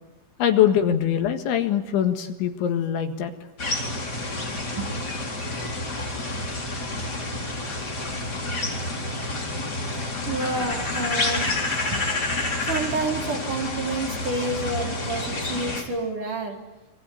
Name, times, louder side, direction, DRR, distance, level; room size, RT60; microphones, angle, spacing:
voice 1, 0.4-3.3, left 10 dB, 70° left, 7 dB, 3.9 m, -22 dB
sound 1, 3.6-15.8, left 2 dB, 20° left, 4.0 m, -29 dB
voice 2, 10.3-11.5 11.9-12.2 12.6-16.6, right 2 dB, 45° right, 2 dB, 4.6 m, -29 dB
27.5 x 25.0 x 8.5 m, 1.1 s
omnidirectional pair, 5.7 m